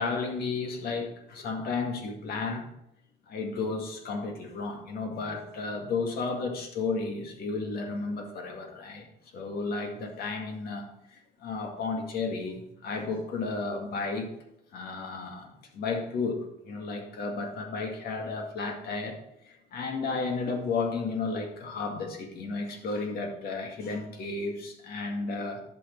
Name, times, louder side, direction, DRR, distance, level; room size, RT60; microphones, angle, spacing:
voice 1, 0.0-2.7 3.3-9.1 9.3-14.3 14.7-19.2 19.4-25.6, left 4 dB, 65° left, 3 dB, 2.0 m, -33 dB
10.5 x 6.1 x 4.5 m, 0.80 s
cardioid pair, 110°, 17 cm